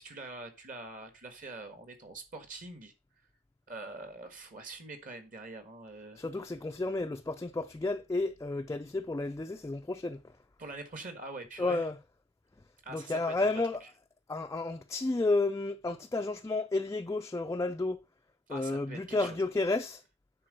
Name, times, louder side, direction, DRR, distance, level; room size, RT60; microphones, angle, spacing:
voice 1, 0.0-2.9 3.7-6.2 10.6-11.8 12.8-13.6 18.5-19.4, right 2 dB, 45° right, 1.4 m, -44 dB
voice 2, 6.2-10.2 11.6-12.0 12.9-13.8 14.3-18.0 18.5-20.0, left 2 dB, 15° left, 0.3 m, -31 dB
9.8 x 3.7 x 5.2 m
head